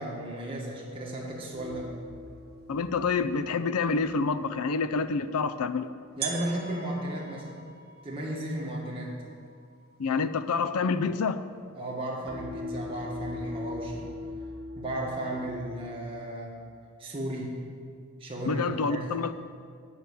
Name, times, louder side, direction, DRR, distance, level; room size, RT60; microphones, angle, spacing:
voice 1, 0.0-1.9 6.2-7.6 8.0-9.2 11.7-14.1 14.7-16.5 17.0-17.5 18.2-19.1, right 1 dB, 25° right, -3 dB, 1.9 m, -34 dB
sound 1, 1.5-4.6 12.3-16.3, left 3 dB, 65° right, 0.9 m, -41 dB
sound 2, 2.3-2.4 3.1-3.2 4.9-5.0 6.2-11.8, right 7 dB, 45° right, 1.1 m, -43 dB
voice 2, 2.7-5.9 10.0-11.4 18.5-19.3, left 4 dB, 75° left, 12 dB, 0.5 m, -27 dB
9.1 x 6.8 x 6.8 m, 2.2 s
head